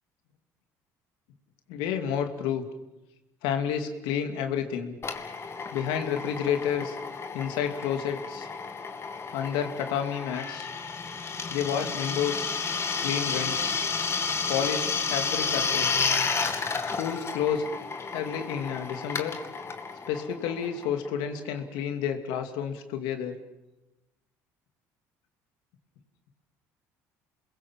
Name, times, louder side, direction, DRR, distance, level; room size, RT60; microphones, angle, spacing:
voice 1, 1.7-2.6 3.4-4.9 5.7-7.0 7.3-8.5 9.3-10.7 11.5-12.5 13.0-13.7 14.5-16.0 16.9-17.7 18.1-19.3 20.1-23.4, left 8 dB, 80° left, 6 dB, 2.7 m, -30 dB
Drill, 5.0-21.4, left 5 dB, 35° left, 2.4 m, -31 dB
28.5 x 21.5 x 7.5 m, 1.0 s
supercardioid pair, 80°, 8 cm